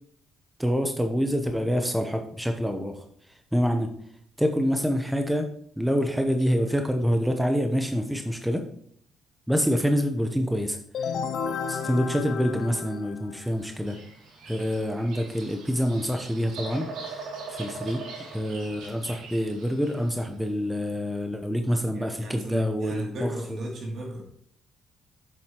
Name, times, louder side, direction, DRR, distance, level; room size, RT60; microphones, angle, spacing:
voice 1, 0.6-3.9 4.4-5.5 5.8-8.6 9.5-11.1 11.7-14.0 14.4-18.0 18.3-23.6, equal, 5° right, 4 dB, 0.8 m, -26 dB
sound 1, 10.9-13.6, left 6 dB, 70° left, 0.5 m, -32 dB
Bird vocalization bird call bird song, 13.6-20.2, right 4 dB, 85° right, 2.6 m, -41 dB
voice 2, 21.9-24.3, equal, 60° right, -1 dB, 2.8 m, -34 dB
7.6 x 7.4 x 3.0 m, 0.64 s
cardioid pair, 90°, 0 cm